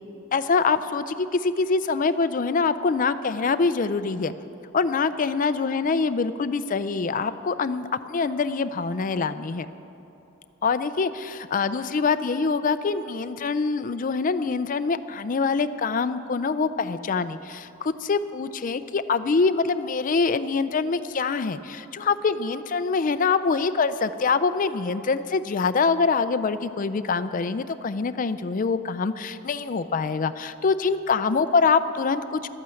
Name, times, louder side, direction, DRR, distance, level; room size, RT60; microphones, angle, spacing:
voice 1, 0.3-4.3 4.7-9.7 10.6-32.5, left 4 dB, 40° left, 12 dB, 0.4 m, -24 dB
12.0 x 8.8 x 7.6 m, 3.0 s
head